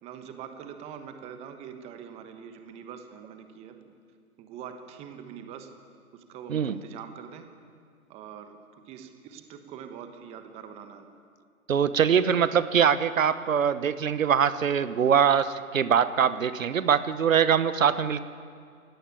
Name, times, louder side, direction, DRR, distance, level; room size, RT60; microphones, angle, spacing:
voice 1, 0.0-3.9 4.4-5.7 6.1-7.4 8.1-11.1, right 8 dB, 15° right, 7 dB, 1.2 m, -43 dB
voice 2, 11.7-18.2, right 7 dB, 60° right, 14 dB, 1.1 m, -23 dB
22.0 x 17.0 x 10.0 m, 2.3 s
figure-of-eight pair, 140°, 44 cm